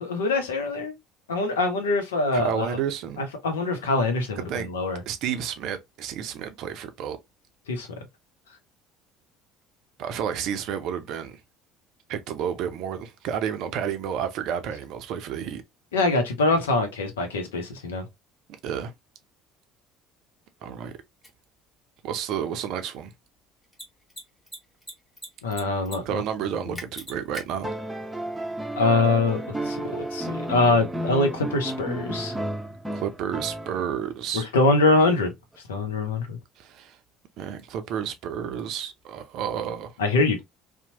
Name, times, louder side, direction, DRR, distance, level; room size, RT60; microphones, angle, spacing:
voice 1, 0.0-0.9 1.3-2.7 3.2-5.0 7.7-7.9 15.9-18.0 25.4-26.2 28.8-32.3 34.5-35.3 35.7-36.4 40.0-40.4, left 2 dB, 75° left, 0.6 m, -24 dB
voice 2, 2.3-3.2 4.4-4.7 5.1-7.2 10.0-11.4 12.1-15.6 18.6-18.9 20.6-20.9 22.0-23.1 26.0-27.7 32.9-34.5 36.6-37.0 37.4-39.9, right 8 dB, 55° right, 0.5 m, -31 dB
Mechanisms, 21.2-21.3 23.6-23.8 24.1-24.2 24.5-25.3 25.5-26.0 26.2-26.3 26.7-27.4, equal, 15° left, 1.2 m, -37 dB
sound 1, 27.6-34.1 35.5-35.6, right 1 dB, 10° right, 0.6 m, -32 dB
2.8 x 2.0 x 2.7 m
figure-of-eight pair, 60°, 0 cm